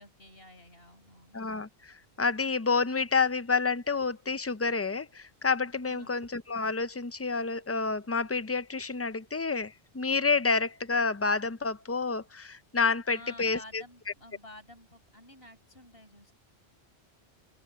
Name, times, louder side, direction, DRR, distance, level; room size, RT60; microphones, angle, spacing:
voice 1, 0.0-1.4 5.9-6.1 13.1-16.3, left 1 dB, 65° left, 7.3 m, -51 dB
voice 2, 1.3-13.8, left 4 dB, 20° left, 0.3 m, -29 dB
open air
omnidirectional pair, 1.1 m